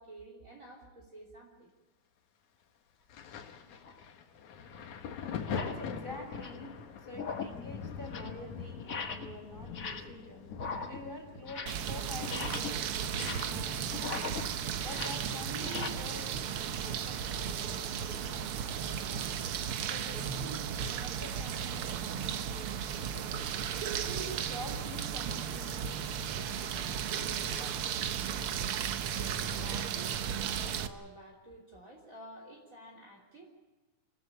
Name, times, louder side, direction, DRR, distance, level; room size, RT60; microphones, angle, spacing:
voice 1, 0.0-1.7 29.1-33.5, right 1 dB, 25° right, 0 dB, 3.5 m, -51 dB
Thunder, 3.1-16.5 16.7-18.1 18.9-19.1, left 6 dB, 80° left, 3.0 m, -44 dB
sound 1, 3.8-4.0 4.7-4.8 5.4-5.8 6.2-6.7 7.1-7.6 7.9-8.4 8.8-9.4 9.6-10.2 10.5-11.9 12.2-15.9, left 5 dB, 45° left, 1.2 m, -40 dB
voice 2, 5.4-10.4 10.9-14.3 14.8-19.3 19.9-20.6 20.9-23.6 24.0-27.8, equal, 15° left, 1 dB, 4.3 m, -47 dB
sound 2, 11.7-30.9, right 8 dB, 65° right, 1.5 m, -35 dB
27.0 x 14.0 x 8.2 m, 1.2 s
omnidirectional pair, 3.3 m